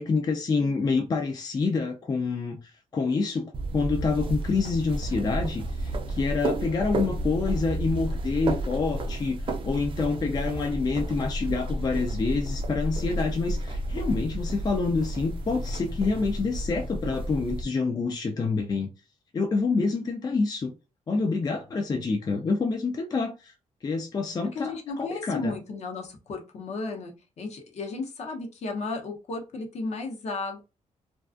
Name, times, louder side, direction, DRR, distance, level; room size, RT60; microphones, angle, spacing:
voice 1, 0.0-2.6 2.9-9.4 9.6-18.9 19.3-20.7 21.1-23.5 23.8-25.5, left 4 dB, 30° left, 0.4 m, -27 dB
sound 1, 3.5-17.6, right 1 dB, 40° right, 0.4 m, -31 dB
voice 2, 24.5-30.6, left 3 dB, 60° left, 0.7 m, -34 dB
2.4 x 2.2 x 2.4 m
cardioid pair, 110°, 13 cm